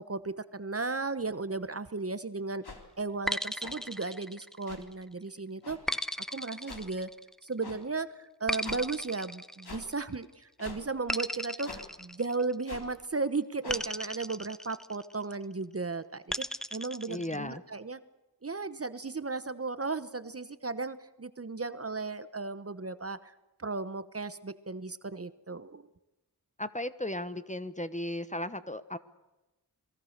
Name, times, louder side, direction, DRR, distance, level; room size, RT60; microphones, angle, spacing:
voice 1, 0.0-2.6 3.0-5.8 6.3-7.1 7.4-18.0 18.4-23.3 23.6-25.8, right 3 dB, 35° right, 13 dB, 1.1 m, -35 dB
sound 1, 2.6-2.8 3.6-3.8 4.7-4.8 5.6-5.8 6.7-6.8 7.6-7.8 8.6-8.8 9.6-9.8 10.6-10.8 11.6-11.8 12.7-12.9 13.6-13.8, left 3 dB, 75° left, 3.7 m, -44 dB
sound 2, 3.3-4.9 5.9-7.5 8.5-10.2 11.1-12.8 13.7-15.2 16.3-17.4, equal, ahead, 0.8 m, -36 dB
voice 2, 17.1-17.6 26.6-29.0, left 1 dB, 20° left, 13 dB, 1.2 m, -35 dB
27.5 x 21.5 x 6.7 m, 1.0 s
wide cardioid pair, 70°, 39 cm